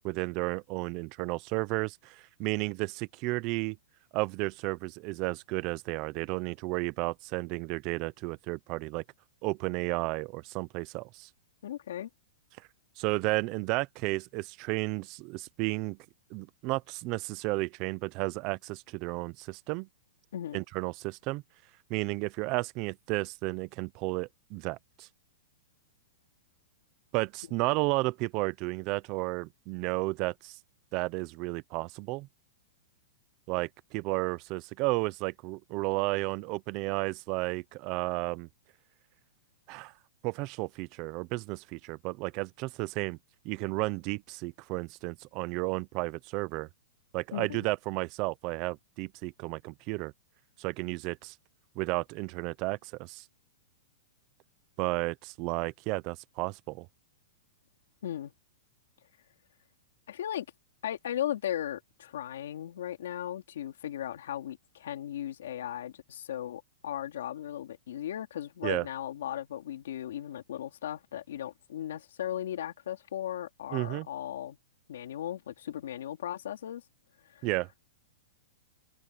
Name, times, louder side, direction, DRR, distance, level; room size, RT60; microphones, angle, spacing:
voice 1, 0.0-3.8 4.1-9.0 9.4-11.3 13.0-16.0 16.3-19.9 20.5-21.4 21.9-25.1 27.1-30.6 30.9-32.3 33.5-38.5 39.7-39.9 40.2-43.2 43.4-46.7 47.1-50.1 50.6-51.3 51.8-53.2 54.8-56.9 68.6-68.9 73.7-74.1 77.4-77.7, right 23 dB, 30° right, 0.6 m, -33 dB
voice 2, 11.6-12.1 20.3-20.6 47.3-47.7 58.0-58.3 60.1-60.4 60.8-74.6 74.9-76.8 77.3-77.5, left 11 dB, 70° left, 3.1 m, -37 dB
supercardioid pair, 175°, 0 cm